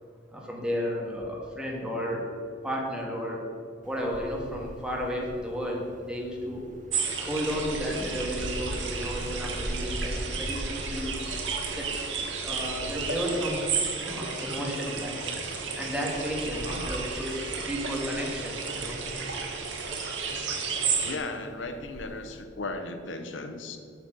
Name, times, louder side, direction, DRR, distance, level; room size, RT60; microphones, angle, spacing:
voice 1, 0.3-2.3 2.6-3.4 3.8-6.6 7.2-11.2 11.7-11.9 12.4-13.7 14.0-15.4 15.7-19.0, equal, 5° right, -2 dB, 1.7 m, -33 dB
Wind, 3.8-22.4, equal, 45° right, 0.7 m, -41 dB
sound 1, 6.9-21.2, right 5 dB, 75° right, 1.5 m, -33 dB
voice 2, 16.6-17.0 21.0-23.8, left 2 dB, 85° left, 7 dB, 0.9 m, -36 dB
7.9 x 6.9 x 6.5 m, 2.3 s
head